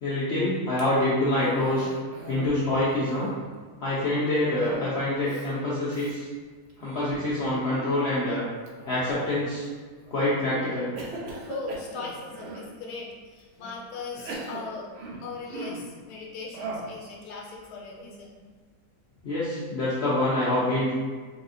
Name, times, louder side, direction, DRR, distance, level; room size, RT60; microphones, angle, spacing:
voice 1, 0.0-1.9 2.3-3.3 3.8-6.3 6.8-8.4 8.9-9.7 10.1-10.9 19.2-20.9, left 1 dB, 65° left, -9 dB, 0.6 m, -26 dB
Cough, 1.4-2.6 2.9-3.6 4.6-5.0 5.3-5.5 5.9-6.1 6.7-7.1 8.7-9.5 10.1-10.4 11.0-12.7 13.4-13.5 14.1-15.9 16.5-17.0, right 3 dB, 70° right, 0.6 m, -39 dB
voice 2, 11.4-14.9 15.2-18.3, left 4 dB, 85° left, -2 dB, 1.2 m, -39 dB
4.1 x 2.1 x 2.5 m, 1.5 s
omnidirectional pair, 1.7 m